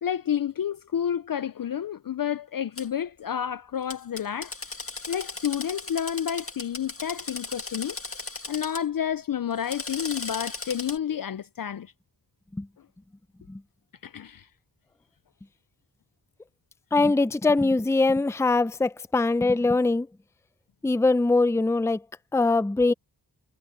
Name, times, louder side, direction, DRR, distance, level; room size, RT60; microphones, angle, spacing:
voice 1, 0.0-4.5 5.1-8.0 8.5-11.9 14.0-14.5, left 9 dB, 60° left, 0.5 m, -30 dB
Drill, 2.8-2.9 3.9-8.8 9.5-11.0, left 3 dB, 35° left, 1.8 m, -37 dB
voice 2, 16.9-20.1 20.8-22.0 22.3-22.9, left 3 dB, 5° left, 0.5 m, -22 dB
wide cardioid pair, 65°, 39 cm